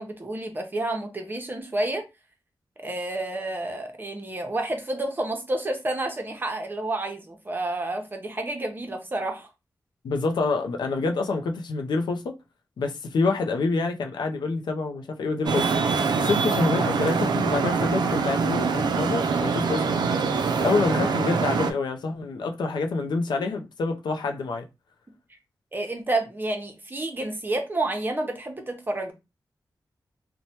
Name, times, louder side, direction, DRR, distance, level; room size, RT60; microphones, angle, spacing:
voice 1, 0.0-2.0 2.8-9.5 25.7-29.1, right 2 dB, 25° right, 0.6 m, -30 dB
voice 2, 10.0-12.4 12.8-15.7 16.2-20.0 20.6-24.7, left 3 dB, 90° left, 0.4 m, -27 dB
Traffic noise roadway noise, 15.5-21.7, right 5 dB, 75° right, 0.3 m, -24 dB
3.0 x 2.1 x 2.7 m
wide cardioid pair, 110°, 7 cm